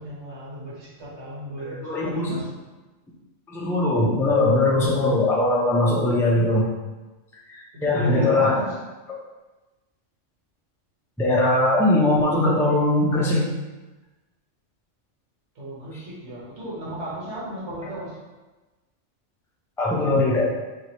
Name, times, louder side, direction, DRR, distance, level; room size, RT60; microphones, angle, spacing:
voice 1, 0.0-2.5 7.7-8.8 15.6-18.2, right 1 dB, 65° right, -6 dB, 1.4 m, -34 dB
voice 2, 1.6-2.4 3.5-6.7 7.5-8.6 11.2-13.5 19.8-20.4, left 2 dB, 5° left, -5 dB, 0.4 m, -21 dB
4.7 x 2.9 x 2.9 m, 1.2 s
omnidirectional pair, 1.2 m